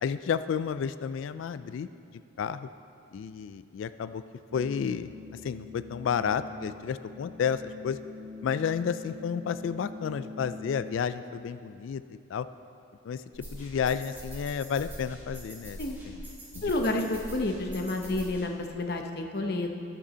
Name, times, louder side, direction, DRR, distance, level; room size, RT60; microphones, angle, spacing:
voice 1, 0.0-1.9 2.4-2.7 3.1-4.2 4.5-5.1 5.4-8.0 8.4-12.0 12.3-12.5 13.1-13.2 13.5-15.8 16.1-16.2 16.5-16.6, left 7 dB, 70° left, 12 dB, 0.3 m, -31 dB
sound 1, 4.5-11.0, left 3 dB, 50° right, 1.3 m, -44 dB
sound 2, 13.3-18.4, equal, 10° right, 2.0 m, -43 dB
voice 2, 16.6-19.7, left 2 dB, 50° left, 3 dB, 0.8 m, -30 dB
10.0 x 6.8 x 6.2 m, 2.4 s
head